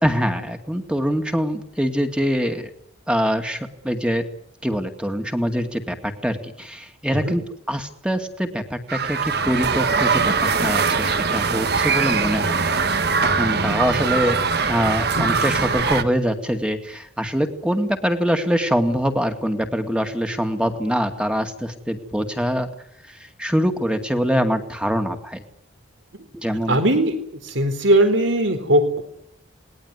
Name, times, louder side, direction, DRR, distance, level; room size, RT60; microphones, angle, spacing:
voice 1, 0.0-2.7 3.1-4.3 4.6-14.4 14.7-22.7 23.1-25.4 26.3-26.8, equal, 5° right, 6 dB, 2.1 m, -24 dB
sound 1, 8.9-16.0, right 5 dB, 55° right, 1.6 m, -21 dB
voice 2, 26.7-29.0, right 1 dB, 70° right, 10 dB, 4.2 m, -19 dB
28.0 x 20.0 x 9.5 m, 0.76 s
head